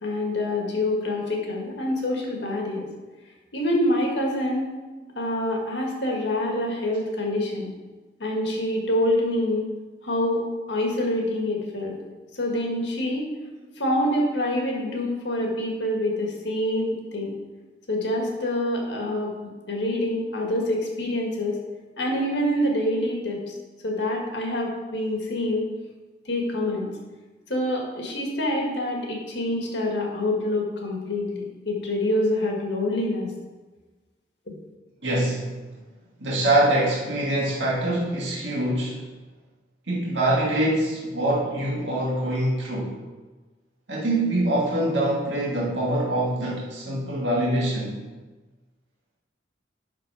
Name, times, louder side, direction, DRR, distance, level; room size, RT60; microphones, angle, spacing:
voice 1, 0.0-2.9 3.5-4.7 5.2-7.7 8.2-9.7 10.0-11.9 12.3-13.3 13.8-17.3 17.9-21.6 22.0-23.4 23.8-25.6 26.3-26.9 27.5-33.3, left 1 dB, 80° left, 0 dB, 1.7 m, -26 dB
voice 2, 35.0-35.6 36.2-39.0 39.9-43.0 43.9-47.9, right 1 dB, 85° right, -5 dB, 1.9 m, -24 dB
11.5 x 3.9 x 4.8 m, 1.2 s
head